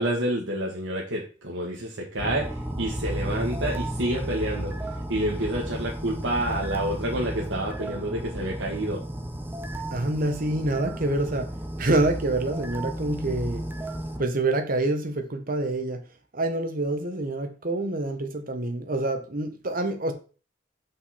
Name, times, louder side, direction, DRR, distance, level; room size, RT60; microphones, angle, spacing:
voice 1, 0.0-4.7 5.1-9.0, right 1 dB, 85° right, 1.5 m, -28 dB
sound 1, 2.2-14.2, right 1 dB, 10° right, 0.7 m, -33 dB
voice 2, 9.9-11.5 11.8-13.6 14.2-16.0 16.3-20.1, right 2 dB, 50° right, 1.2 m, -26 dB
7.3 x 5.6 x 4.2 m
head